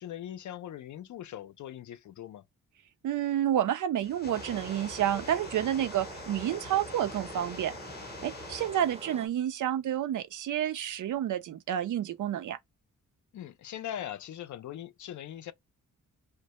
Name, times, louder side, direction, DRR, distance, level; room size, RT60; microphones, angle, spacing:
voice 1, 0.0-2.5 13.3-15.5, left 11 dB, 65° left, 0.4 m, -41 dB
voice 2, 3.0-7.7 8.2-12.6, right 11 dB, 70° right, 0.5 m, -30 dB
sound 1, 4.0-9.0, left 4 dB, 30° left, 0.7 m, -45 dB
Stream, 4.3-9.3, right 3 dB, 20° right, 0.5 m, -45 dB
2.1 x 2.1 x 2.9 m
cardioid pair, 80°, 33 cm